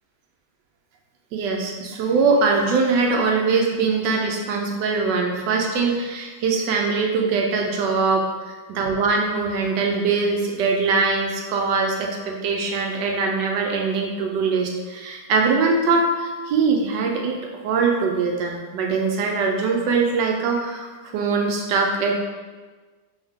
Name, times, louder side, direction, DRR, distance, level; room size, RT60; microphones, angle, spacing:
voice 1, 1.3-17.4 17.6-22.2, right 4 dB, 75° right, 1 dB, 1.2 m, -22 dB
3.5 x 3.5 x 3.5 m, 1.4 s
omnidirectional pair, 2.1 m